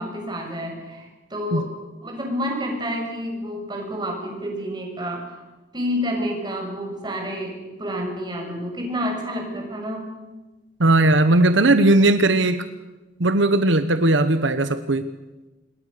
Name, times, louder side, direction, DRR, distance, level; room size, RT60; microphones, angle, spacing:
voice 1, 0.0-1.7 2.0-5.4 5.7-10.0, equal, 25° right, 1 dB, 6.4 m, -29 dB
voice 2, 10.8-12.6 13.2-15.0, right 2 dB, 80° right, 11 dB, 1.2 m, -17 dB
27.0 x 22.0 x 6.9 m, 1.1 s
head